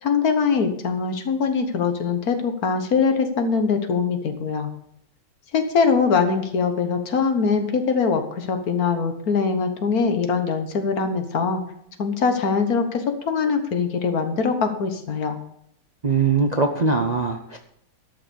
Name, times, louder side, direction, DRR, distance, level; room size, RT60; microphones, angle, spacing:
voice 1, 0.0-4.7 5.5-11.6 12.0-15.4, left 5 dB, 65° left, 7 dB, 1.7 m, -22 dB
voice 2, 16.0-17.6, right 4 dB, 35° right, 4 dB, 0.7 m, -21 dB
12.0 x 5.9 x 6.9 m, 0.73 s
omnidirectional pair, 1.8 m